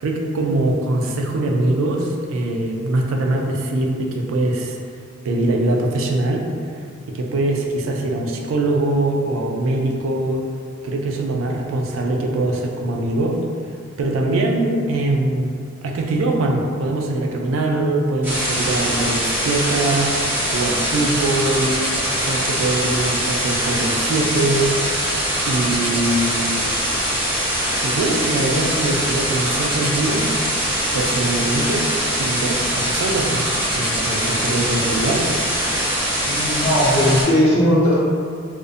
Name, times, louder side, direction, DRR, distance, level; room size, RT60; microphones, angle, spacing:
voice 1, 0.0-4.8 5.2-6.4 7.1-10.4 10.8-13.4 14.0-15.6 15.8-20.2 20.5-21.8 22.1-25.1 25.5-26.8 27.8-30.3 30.9-31.9 32.2-33.5 33.7-35.4, right 2 dB, 90° right, 1 dB, 0.3 m, -22 dB
sound 1, 18.2-37.2, equal, 10° right, 0.7 m, -22 dB
voice 2, 36.2-38.1, equal, 75° left, -8 dB, 0.8 m, -17 dB
2.5 x 2.0 x 2.5 m, 2.1 s
head